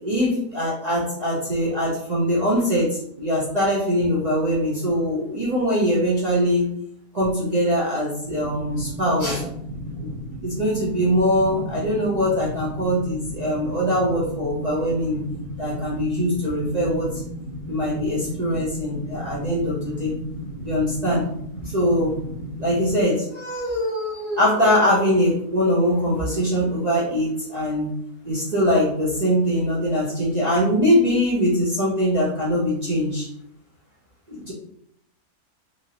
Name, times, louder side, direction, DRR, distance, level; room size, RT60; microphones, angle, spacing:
voice 1, 0.0-6.7 7.1-9.5 10.0-10.1 10.4-15.2 15.6-17.1 17.7-20.1 20.6-21.2 21.6-22.1 22.6-27.9 28.2-33.3 34.3-34.5, equal, 65° right, -6 dB, 0.4 m, -22 dB
sound 1, 8.2-23.0, equal, 30° left, 0.3 m, -34 dB
3.0 x 2.6 x 2.7 m, 0.71 s
omnidirectional pair, 1.7 m